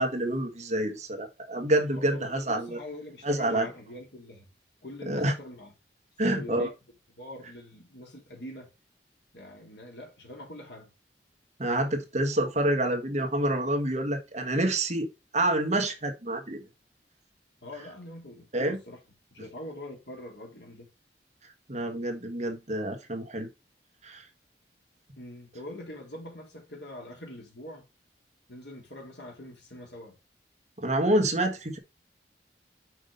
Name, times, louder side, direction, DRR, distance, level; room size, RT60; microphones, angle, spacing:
voice 1, 0.0-2.8 3.2-3.7 5.1-5.3 6.2-6.7 11.6-15.1 15.3-16.6 18.5-18.8 21.7-23.5 24.0-24.3 30.8-31.8, right 1 dB, 40° right, 1.5 m, -27 dB
voice 2, 1.9-4.5 4.8-5.7 6.2-6.7 7.1-8.7 9.3-10.9 17.6-19.0 19.3-20.9 25.1-27.9 28.5-30.1, left 1 dB, 75° left, 3.2 m, -43 dB
6.1 x 5.3 x 5.3 m
head